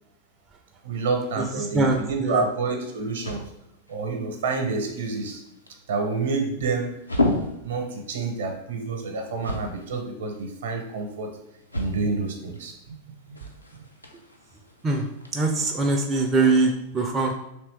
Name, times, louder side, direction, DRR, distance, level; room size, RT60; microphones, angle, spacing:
voice 1, 0.8-3.5 3.9-5.4 5.9-6.9 7.6-11.3 11.7-13.0, right 4 dB, 60° right, 3 dB, 0.7 m, -28 dB
voice 2, 1.4-2.4 14.8-15.1 15.3-17.3, right 3 dB, 20° right, 2 dB, 0.4 m, -23 dB
sound 1, 1.9-15.3, left 2 dB, 85° left, 0.5 m, -35 dB
3.3 x 3.0 x 3.3 m, 0.86 s
figure-of-eight pair, 90°, 0 cm